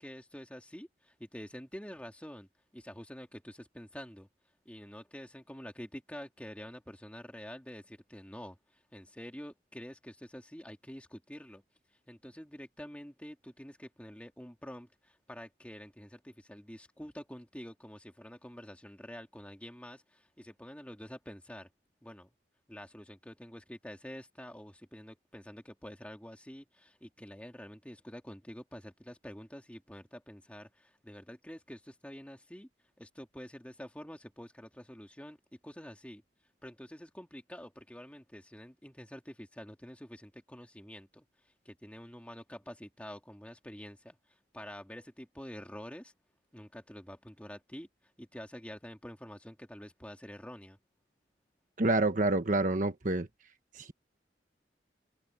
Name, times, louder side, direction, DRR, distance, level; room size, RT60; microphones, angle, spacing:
voice 1, 0.0-4.3 4.6-11.6 12.1-21.7 22.0-22.3 22.7-32.7 33.0-35.4 35.6-36.2 36.6-41.2 41.6-44.2 44.5-46.1 46.5-47.9 48.2-50.8, equal, 5° left, 2.6 m, -47 dB
voice 2, 51.8-53.3 53.7-53.9, right 2 dB, 45° right, 1.2 m, -28 dB
open air
head